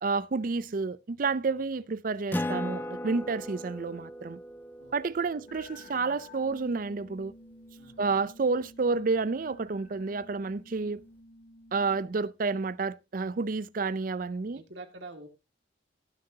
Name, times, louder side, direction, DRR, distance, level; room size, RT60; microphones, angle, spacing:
voice 1, 0.0-4.4 4.9-7.3 8.0-11.0 11.7-14.6, right 4 dB, 50° right, 0.5 m, -30 dB
Acoustic guitar, 2.3-7.3, left 1 dB, 10° left, 0.6 m, -38 dB
voice 2, 4.8-5.3 7.8-8.2 14.5-15.3, right 2 dB, 80° right, 2.1 m, -48 dB
sound 1, 5.5-12.1, left 2 dB, 70° left, 2.2 m, -52 dB
18.5 x 6.6 x 2.8 m
head